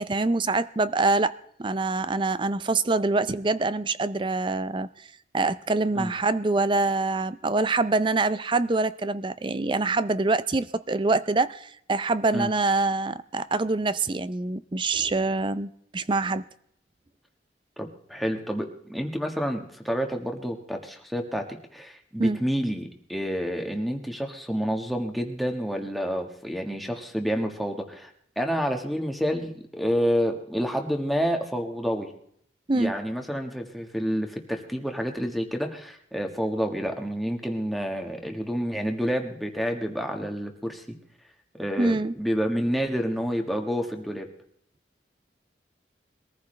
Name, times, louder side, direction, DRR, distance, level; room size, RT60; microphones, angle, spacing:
voice 1, 0.0-1.3 1.6-5.1 5.3-16.4 22.2-22.4 32.7-32.9 41.8-42.1, right 3 dB, 25° right, 0.5 m, -25 dB
voice 2, 17.8-21.4 21.7-28.1 28.4-32.1 32.7-40.8 41.6-44.3, equal, ahead, 1.4 m, -29 dB
22.0 x 14.5 x 3.3 m
head